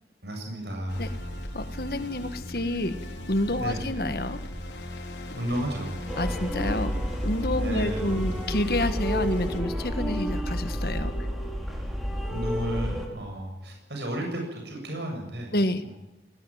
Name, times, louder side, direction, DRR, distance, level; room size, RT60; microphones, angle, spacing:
voice 1, 0.2-1.1 3.6-3.8 5.4-6.1 7.5-8.2 12.3-15.5 15.8-16.0, equal, 80° right, 2 dB, 7.6 m, -33 dB
sound 1, 0.9-9.6, left 1 dB, 90° left, 4.6 m, -38 dB
voice 2, 1.5-3.0 3.3-4.4 6.2-6.9 7.2-11.1 15.5-15.8, left 1 dB, 60° left, 10 dB, 1.6 m, -28 dB
sound 2, 6.1-13.1, equal, ahead, 4.7 m, -30 dB
20.5 x 19.0 x 9.1 m, 0.92 s
head